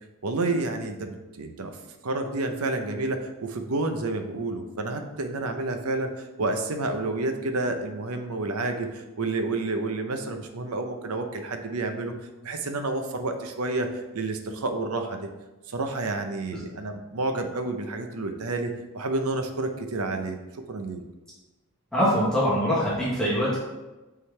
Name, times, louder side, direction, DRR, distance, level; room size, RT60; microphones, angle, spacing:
voice 1, 0.2-1.7 2.0-12.1 12.4-15.3 15.7-20.4 20.7-21.0, right 2 dB, 85° right, 6 dB, 0.7 m, -29 dB
voice 2, 21.9-23.6, equal, 5° left, -8 dB, 1.2 m, -23 dB
8.3 x 3.9 x 3.3 m, 1.1 s
head